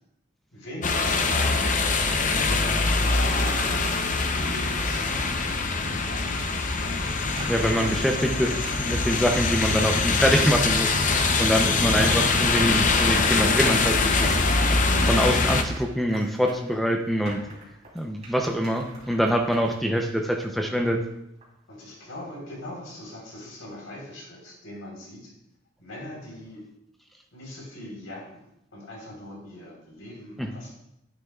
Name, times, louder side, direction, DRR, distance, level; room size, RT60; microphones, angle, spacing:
voice 1, 0.5-2.6 3.0-3.9 4.3-5.4 6.0-6.4 11.5-11.8 21.7-25.3 25.8-26.6 27.3-30.7, left 1 dB, 90° left, -2 dB, 3.8 m, -41 dB
sound 1, 0.8-15.6, left 3 dB, 40° left, 0.7 m, -23 dB
sound 2, 7.1-21.1 21.4-21.5, right 1 dB, 35° right, 3.2 m, -43 dB
voice 2, 7.5-14.4 15.0-17.4 17.9-21.0 30.4-30.5, equal, ahead, 3 dB, 0.6 m, -25 dB
11.5 x 9.1 x 2.4 m, 0.81 s
head